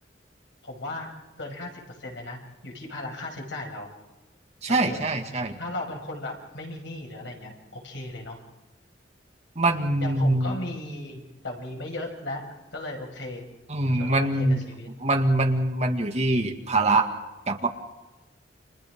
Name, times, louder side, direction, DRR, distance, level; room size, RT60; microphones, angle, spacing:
voice 1, 0.6-1.1 1.4-3.9 4.7-8.4 10.0-12.4 12.7-13.5 14.0-14.9, left 2 dB, 80° left, 0 dB, 6.0 m, -36 dB
voice 2, 4.6-5.6 9.6-10.6 13.7-14.6 15.0-17.1 17.5-17.7, right 2 dB, 40° right, 3 dB, 2.1 m, -23 dB
30.0 x 26.0 x 3.8 m, 1.1 s
head